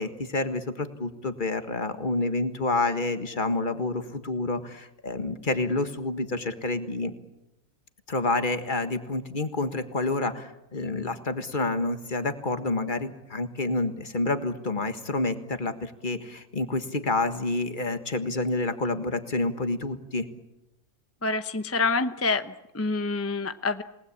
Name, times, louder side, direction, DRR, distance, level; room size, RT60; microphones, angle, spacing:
voice 1, 0.0-7.1 8.1-20.3, left 2 dB, 30° left, 9 dB, 1.7 m, -28 dB
voice 2, 21.2-23.8, left 3 dB, 15° left, 10 dB, 0.6 m, -27 dB
28.0 x 19.5 x 8.5 m, 0.91 s
omnidirectional pair, 1.7 m